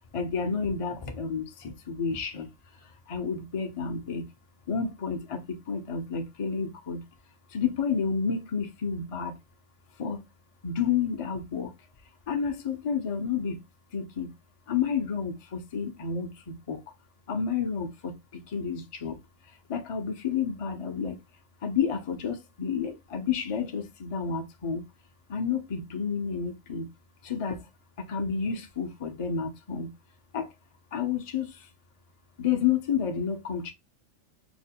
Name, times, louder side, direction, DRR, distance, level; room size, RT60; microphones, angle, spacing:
voice 1, 0.1-1.4 1.9-2.5 3.1-4.2 4.7-5.4 5.7-7.0 7.5-9.3 10.0-10.2 10.6-11.7 12.3-13.6 13.9-14.3 14.7-15.3 15.7-16.8 17.3-18.1 18.5-19.2 19.7-21.2 21.6-24.8 25.3-26.8 27.3-27.6 28.1-29.9 30.3-30.4 30.9-31.4 32.4-33.7, left 6 dB, 40° left, 0.5 m, -30 dB
4.9 x 2.2 x 2.7 m
omnidirectional pair, 1.4 m